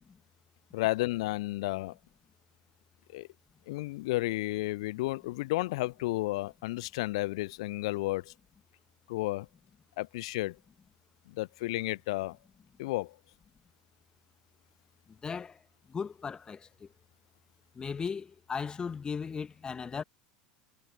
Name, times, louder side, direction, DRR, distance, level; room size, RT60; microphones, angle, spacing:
voice 1, 0.7-2.0 3.1-3.3 3.7-8.3 9.1-9.5 10.0-10.6 11.3-12.4 12.8-13.2, left 19 dB, 60° left, 0.4 m, -32 dB
voice 2, 15.2-15.6 15.9-16.9 17.8-20.0, left 6 dB, 25° left, 1.8 m, -37 dB
figure-of-eight pair, 75°, 4 cm